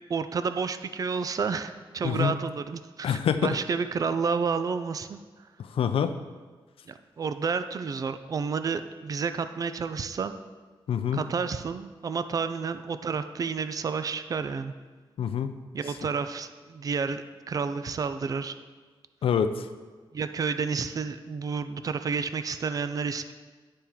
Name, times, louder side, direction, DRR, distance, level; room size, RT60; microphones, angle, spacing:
voice 1, 0.1-5.2 6.9-10.4 11.1-14.7 15.7-18.6 20.1-23.3, right 5 dB, 40° right, 10 dB, 0.4 m, -30 dB
voice 2, 2.0-2.4 3.0-3.6 5.7-6.2 10.9-11.2 15.2-15.5 19.2-19.7, left 8 dB, 85° left, 10 dB, 0.4 m, -26 dB
10.5 x 4.3 x 3.6 m, 1.4 s
wide cardioid pair, 130°, 9 cm